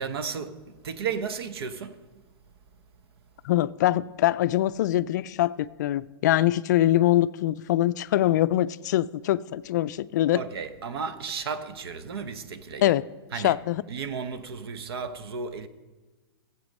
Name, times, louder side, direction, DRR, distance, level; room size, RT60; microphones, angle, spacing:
voice 1, 0.0-2.1 10.3-12.9 13.3-13.6 13.9-15.7, right 6 dB, 75° right, 1.0 m, -34 dB
voice 2, 3.4-10.4 12.8-13.0 13.4-13.8, left 14 dB, 45° left, 0.4 m, -23 dB
16.0 x 7.9 x 5.3 m
supercardioid pair, 165°, 13 cm